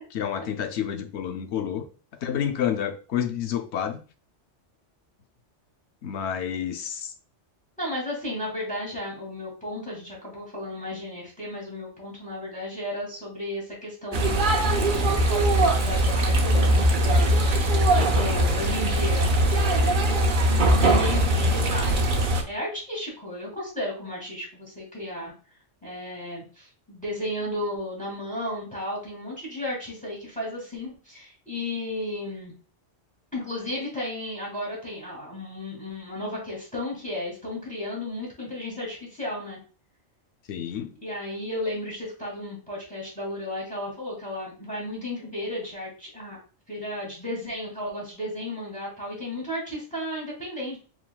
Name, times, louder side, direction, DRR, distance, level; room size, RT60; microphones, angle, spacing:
voice 1, 0.1-1.8 2.2-4.0 6.0-7.1 40.5-40.9, left 9 dB, 70° left, 7 dB, 0.9 m, -29 dB
voice 2, 7.8-20.1 20.4-22.1 22.5-25.3 25.8-32.5 33.3-39.6 41.0-46.4 46.7-50.8, left 1 dB, 5° left, -3 dB, 2.1 m, -34 dB
sound 1, 14.1-22.4, right 1 dB, 50° right, 0.8 m, -21 dB
4.7 x 3.8 x 2.3 m, 0.37 s
omnidirectional pair, 1.2 m